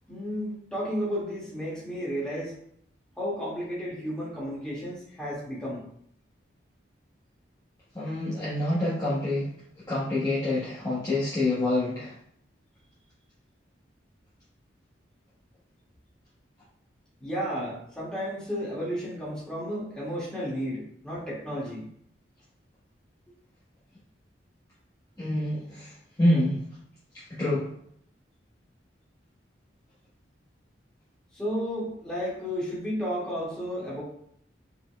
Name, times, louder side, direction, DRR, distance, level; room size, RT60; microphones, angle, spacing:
voice 1, 0.1-2.5 3.2-5.8 17.2-21.9 31.3-34.0, equal, 5° left, -8 dB, 1.9 m, -32 dB
voice 2, 7.9-9.5 9.9-12.1 25.2-26.6 27.4-27.7, left 1 dB, 20° left, -10 dB, 1.1 m, -27 dB
5.4 x 4.3 x 2.2 m, 0.68 s
head